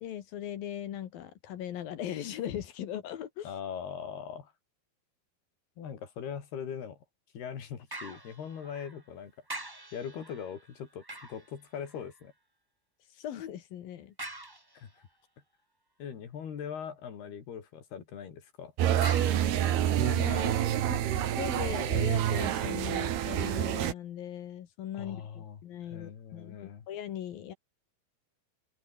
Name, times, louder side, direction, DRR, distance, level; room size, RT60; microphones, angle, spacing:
voice 1, 0.0-3.5 13.1-14.1 20.0-26.6 26.9-27.5, left 10 dB, 70° left, 3.3 m, -39 dB
voice 2, 3.4-4.5 5.8-7.0 7.3-9.3 9.9-12.3 14.8-15.1 16.0-18.7 24.9-26.9, left 8 dB, 85° left, 5.5 m, -41 dB
sound 1, 7.9-9.1 9.5-12.3 14.2-15.1 19.0-20.5 21.0-21.1, right 1 dB, 30° right, 0.4 m, -45 dB
sound 2, 18.8-23.9, right 11 dB, 85° right, 4.0 m, -27 dB
open air
omnidirectional pair, 4.4 m